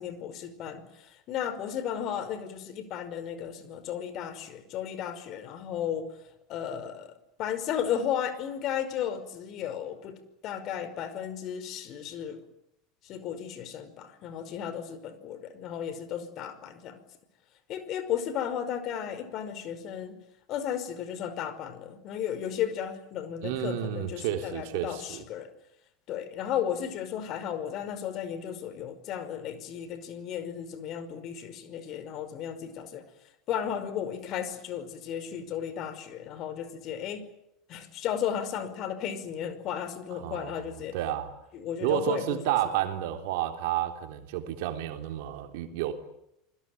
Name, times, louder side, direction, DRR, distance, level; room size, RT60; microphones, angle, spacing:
voice 1, 0.0-6.1 6.5-7.1 7.4-10.2 10.4-12.4 13.0-17.0 17.7-20.2 20.5-25.5 26.1-33.0 33.5-37.2 37.7-41.0 41.5-42.6, left 9 dB, 50° left, 5.3 m, -34 dB
voice 2, 23.4-25.2 40.1-41.3 41.8-45.9, right 12 dB, 70° right, 3.6 m, -31 dB
29.0 x 21.0 x 9.2 m
hypercardioid pair, 90°, 0 cm